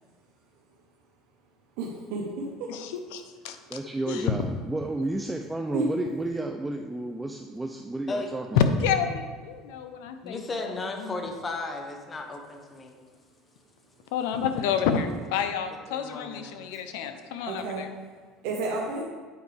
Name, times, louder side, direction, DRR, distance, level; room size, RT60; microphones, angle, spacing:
voice 1, 1.8-2.7 5.7-5.9 16.9-17.0 17.4-17.8 18.4-19.0, right 3 dB, 75° right, -2 dB, 0.8 m, -31 dB
voice 2, 2.7-3.6 4.1-4.3 8.5-10.4 11.0-11.1 14.1-17.9, left 7 dB, 80° left, 8 dB, 0.6 m, -28 dB
voice 3, 3.7-8.6, right 2 dB, 10° right, 4 dB, 0.3 m, -32 dB
voice 4, 10.2-12.9 15.9-16.6, left 3 dB, 25° left, 4 dB, 0.9 m, -35 dB
8.4 x 4.6 x 3.3 m, 1.5 s
supercardioid pair, 115°, 0 cm